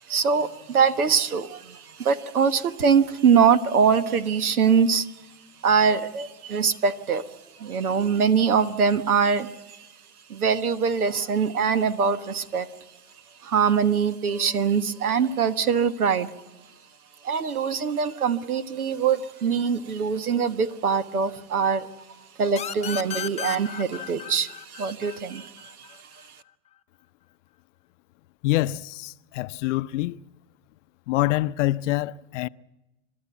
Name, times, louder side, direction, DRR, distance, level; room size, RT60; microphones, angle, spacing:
voice 1, 0.1-5.1 5.6-7.3 7.6-9.9 10.3-12.7 13.4-16.3 17.2-21.9 22.4-26.3, right 6 dB, 90° right, 1.4 m, -23 dB
sound 1, 22.6-26.0, left 9 dB, 15° left, 1.0 m, -35 dB
voice 2, 28.4-30.2 31.1-32.5, left 17 dB, 55° left, 0.6 m, -25 dB
30.0 x 13.0 x 8.2 m
hypercardioid pair, 115°, 43 cm